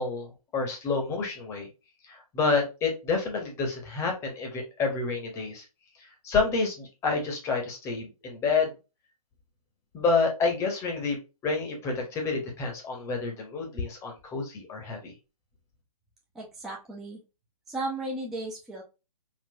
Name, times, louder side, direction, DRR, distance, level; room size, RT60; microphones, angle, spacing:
voice 1, 0.0-1.7 2.1-5.6 6.0-8.7 9.9-11.2 11.4-15.1, left 4 dB, 15° left, 2 dB, 0.7 m, -29 dB
voice 2, 16.3-17.2 17.7-18.8, right 2 dB, ahead, -3 dB, 0.3 m, -35 dB
3.9 x 2.2 x 2.7 m, 0.28 s
hypercardioid pair, 135°, 19 cm